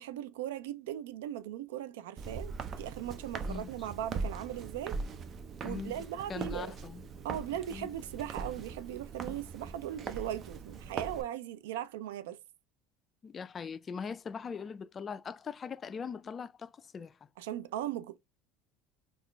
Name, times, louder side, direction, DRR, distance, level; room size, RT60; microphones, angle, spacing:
voice 1, 0.0-5.0 5.6-6.7 7.2-12.4 17.4-18.2, right 11 dB, 85° right, 0.3 m, -38 dB
Walk footsteps, 2.2-11.2, right 4 dB, 40° right, 0.5 m, -41 dB
voice 2, 3.5-3.9 5.6-7.0 7.7-7.9 13.2-17.2, left 6 dB, 30° left, 0.3 m, -41 dB
3.8 x 2.3 x 3.1 m
supercardioid pair, 105°, 0 cm